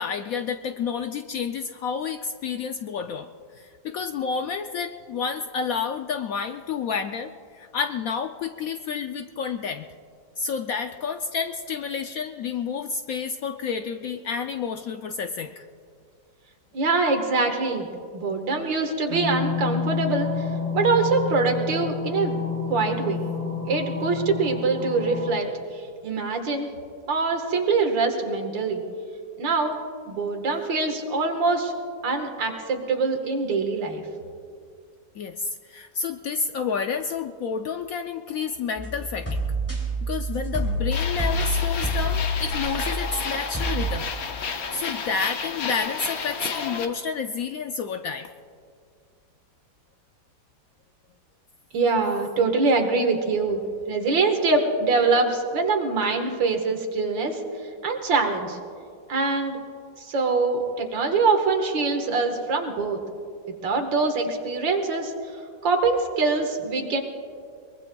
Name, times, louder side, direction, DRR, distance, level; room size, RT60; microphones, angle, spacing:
voice 1, 0.0-9.9 10.4-15.6 35.1-39.4 40.1-44.1 44.7-48.3, left 6 dB, 70° left, 7 dB, 0.8 m, -30 dB
voice 2, 16.7-17.9 18.1-20.5 20.7-22.4 22.7-23.2 23.7-26.7 27.1-28.8 29.4-29.8 30.1-31.7 32.0-34.0 51.7-53.6 53.9-57.4 57.8-58.6 59.1-59.6 60.0-63.0 63.6-65.4 65.6-67.0, right 4 dB, 90° right, 4 dB, 2.2 m, -24 dB
sound 1, 19.1-25.3, left 5 dB, 50° right, 4.5 m, -29 dB
sound 2, 38.8-43.3 43.5-44.0, equal, 5° left, 3.0 m, -27 dB
sound 3, 40.9-46.8, left 5 dB, 55° left, 1.4 m, -31 dB
23.0 x 21.5 x 2.3 m, 2.2 s
omnidirectional pair, 2.0 m